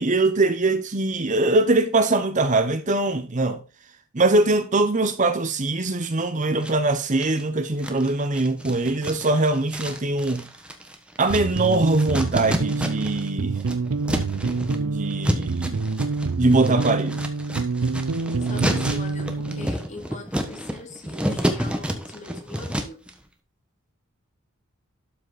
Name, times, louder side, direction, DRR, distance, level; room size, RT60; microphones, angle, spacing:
voice 1, 0.0-3.6 4.1-10.5 11.2-13.6 14.7-15.8 16.4-17.2, right 2 dB, 35° right, 0.8 m, -22 dB
sound 1, 6.6-7.4 7.8-13.3 13.5-23.1, equal, 5° right, 1.2 m, -30 dB
sound 2, 11.3-19.7, right 3 dB, 85° right, 0.6 m, -27 dB
voice 2, 18.4-23.0, left 2 dB, 35° left, 2.5 m, -41 dB
12.5 x 5.9 x 4.1 m
head